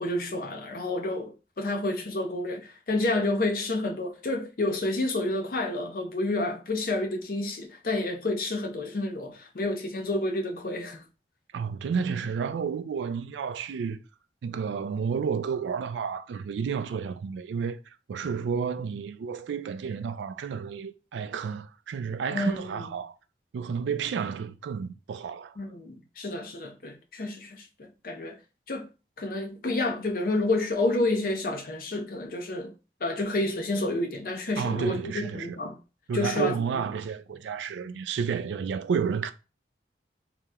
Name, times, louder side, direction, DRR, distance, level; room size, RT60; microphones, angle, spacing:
voice 1, 0.0-11.0 22.3-22.8 25.6-28.4 28.7-28.9 29.2-32.7 33.0-35.8 36.1-36.8, left 2 dB, 50° left, 0.5 m, -29 dB
voice 2, 11.5-14.0 14.4-17.8 18.1-23.1 23.5-25.5 34.6-35.6 36.1-39.3, right 6 dB, 80° right, 0.3 m, -31 dB
2.9 x 2.0 x 3.4 m
head